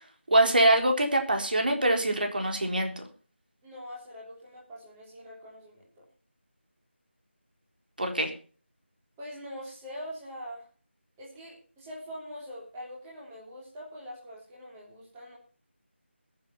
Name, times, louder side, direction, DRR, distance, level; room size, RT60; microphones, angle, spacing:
voice 1, 0.3-3.0 8.0-8.3, right 1 dB, 45° right, 4 dB, 3.9 m, -24 dB
voice 2, 3.6-6.0 9.2-10.6 11.2-15.4, equal, 10° right, -5 dB, 3.4 m, -43 dB
21.0 x 7.8 x 5.8 m, 0.40 s
figure-of-eight pair, 165°, 7 cm